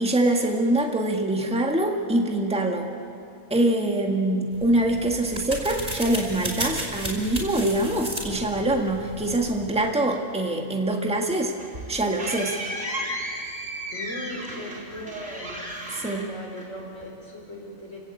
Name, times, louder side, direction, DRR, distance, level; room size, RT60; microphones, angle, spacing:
voice 1, 0.0-2.9 3.5-11.6 11.9-12.6 15.9-16.3, right 1 dB, 5° right, 2 dB, 1.7 m, -24 dB
sound 1, 4.5-9.9, right 1 dB, 35° right, 4.9 m, -34 dB
sound 2, 11.2-17.0, right 1 dB, 50° right, 5.0 m, -34 dB
voice 2, 13.9-15.6 16.2-18.0, equal, 60° left, 0 dB, 4.9 m, -38 dB
29.5 x 17.0 x 8.3 m, 2.5 s
omnidirectional pair, 1.4 m